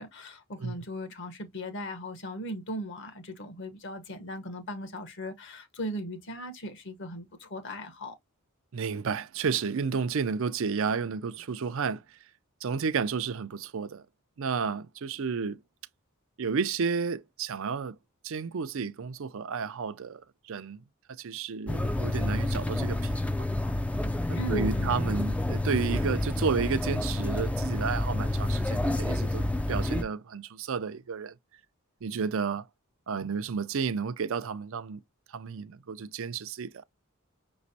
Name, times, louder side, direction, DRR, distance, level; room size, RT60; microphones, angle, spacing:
voice 1, 0.0-8.1 24.3-25.0, equal, 60° left, 1.1 m, -38 dB
voice 2, 8.7-12.0 12.6-14.0 14.4-15.6 16.4-18.0 18.2-20.2 20.5-20.8 21.2-23.1 24.3-31.3 32.0-32.7 33.1-35.0 35.3-36.8, right 5 dB, 65° right, 0.5 m, -31 dB
sound 1, 21.7-30.0, left 1 dB, 5° left, 0.4 m, -29 dB
5.9 x 3.1 x 2.7 m
head